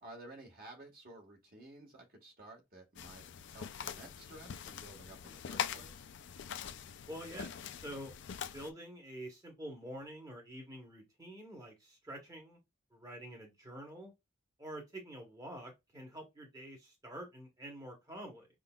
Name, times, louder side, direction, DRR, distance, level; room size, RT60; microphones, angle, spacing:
voice 1, 0.0-6.1, right 2 dB, 45° right, 1.5 m, -53 dB
sound 1, 3.0-8.7, left 8 dB, 55° left, 0.4 m, -43 dB
voice 2, 7.1-8.2 8.5-12.6 12.9-14.1 14.6-18.5, right 1 dB, 15° right, 1.1 m, -47 dB
5.2 x 3.7 x 2.3 m
head